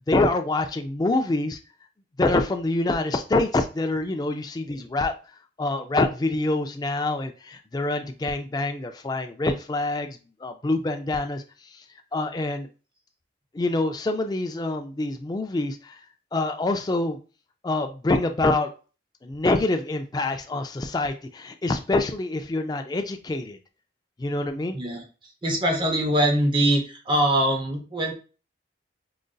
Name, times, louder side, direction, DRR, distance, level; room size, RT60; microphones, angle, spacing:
voice 1, 0.1-1.6 2.2-5.1 5.6-11.4 12.1-12.7 13.5-16.0 16.3-17.2 17.6-18.7 19.2-23.6 24.2-24.8, left 2 dB, 20° left, 0.3 m, -26 dB
voice 2, 24.7-28.1, right 1 dB, 25° right, 0.6 m, -23 dB
4.9 x 2.6 x 2.2 m
head